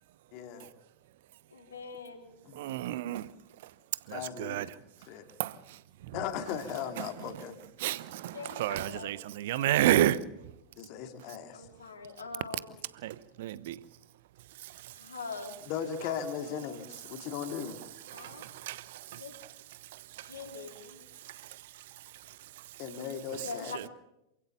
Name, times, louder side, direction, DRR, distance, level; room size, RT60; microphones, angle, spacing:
voice 1, 0.3-0.7 2.5-2.6 4.1-4.6 5.1-5.3 6.1-7.6 10.8-11.7 15.7-17.8 22.8-23.7, left 8 dB, 45° left, 2.6 m, -37 dB
voice 2, 1.5-2.3 8.3-9.1 9.5-9.9 11.5-12.7 14.9-15.6 16.0-16.8 18.0-18.6 19.1-19.3 20.2-21.1 23.4-23.9, left 4 dB, 75° left, 3.9 m, -44 dB
voice 3, 2.5-3.3 3.6-3.7 4.1-4.7 5.4-6.2 7.0-7.1 7.8-10.2 13.0-13.8 14.6-15.0 17.2-17.3 18.1-19.2 19.8-20.3 21.2-22.8 23.7-23.8, right 13 dB, 55° right, 0.9 m, -32 dB
27.5 x 16.0 x 7.1 m
figure-of-eight pair, 90°, 0 cm